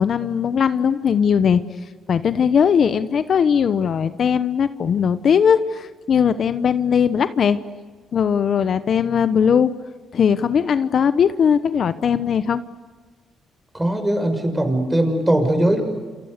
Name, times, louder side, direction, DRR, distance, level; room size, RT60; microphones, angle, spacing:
voice 1, 0.0-1.6 2.1-7.6 8.1-9.7 10.1-12.6, left 7 dB, 55° left, 12 dB, 1.0 m, -19 dB
voice 2, 13.7-15.8, right 1 dB, 10° right, 6 dB, 6.4 m, -20 dB
29.0 x 28.0 x 6.8 m, 1.4 s
cardioid pair, 90°, 0 cm